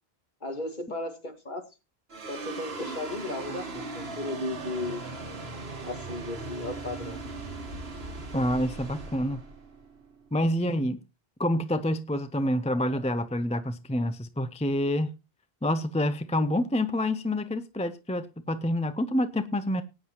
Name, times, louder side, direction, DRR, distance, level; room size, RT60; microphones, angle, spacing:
voice 1, 0.4-1.6 2.3-5.0 5.8-7.2, left 2 dB, 50° left, 2.1 m, -35 dB
sound 1, 2.1-10.6, right 3 dB, 80° right, 1.9 m, -39 dB
voice 2, 8.3-9.4 10.3-11.0 11.4-15.1 15.6-19.8, left 1 dB, 10° left, 0.5 m, -27 dB
18.5 x 9.4 x 3.0 m
omnidirectional pair, 1.0 m